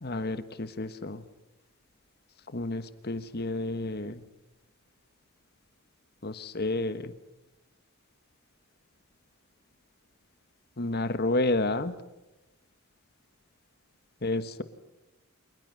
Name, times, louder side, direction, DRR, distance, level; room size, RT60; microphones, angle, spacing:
voice 1, 0.0-1.2 2.5-4.2 6.2-7.1 10.8-11.9 14.2-14.6, left 2 dB, 50° left, 12 dB, 1.3 m, -30 dB
28.0 x 20.5 x 6.4 m, 0.98 s
head